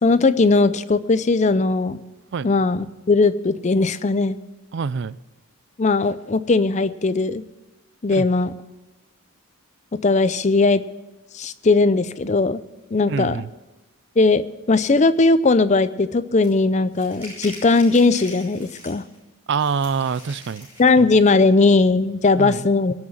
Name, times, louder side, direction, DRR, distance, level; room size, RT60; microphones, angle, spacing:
voice 1, 0.0-2.0 2.4-4.4 5.8-7.4 8.0-8.5 10.0-10.8 11.3-12.6 12.9-13.4 14.2-19.0 20.8-22.9, left 3 dB, 30° left, 14 dB, 0.5 m, -18 dB
voice 2, 4.7-5.2 8.1-8.3 13.1-13.5 19.5-20.7 22.4-22.7, right 5 dB, 50° right, 18 dB, 0.4 m, -25 dB
sound 1, 16.4-16.5 16.9-19.2 19.6-21.0, left 1 dB, 10° right, 5.8 m, -42 dB
18.0 x 6.4 x 8.7 m, 1.1 s
head